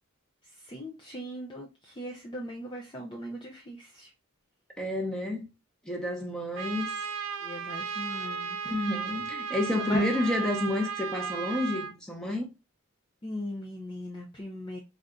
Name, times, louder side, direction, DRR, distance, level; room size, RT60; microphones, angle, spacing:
voice 1, 0.6-4.1 7.4-8.7 9.8-10.0 13.2-14.8, equal, 20° left, 0.5 m, -39 dB
voice 2, 4.8-5.5 5.8-6.9 8.6-12.5, left 1 dB, 5° left, 0.9 m, -30 dB
Trumpet, 6.5-11.9, right 6 dB, 70° right, 0.5 m, -35 dB
3.4 x 2.6 x 3.6 m
head